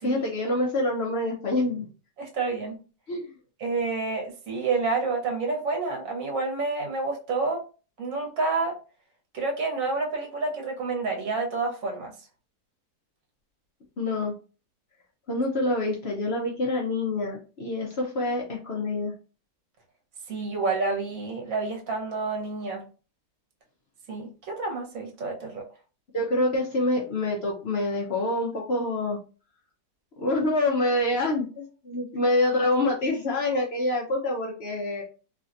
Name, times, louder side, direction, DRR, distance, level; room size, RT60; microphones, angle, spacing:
voice 1, 0.0-1.9 3.1-3.3 14.0-14.4 15.3-19.1 26.1-29.2 30.2-35.0, left 2 dB, 50° left, -2 dB, 0.8 m, -26 dB
voice 2, 2.2-2.8 3.6-7.6 8.0-8.7 9.3-12.1 20.3-22.8 24.1-25.6, right 3 dB, 60° right, 0 dB, 1.4 m, -29 dB
3.2 x 2.8 x 2.5 m, 0.34 s
omnidirectional pair, 1.7 m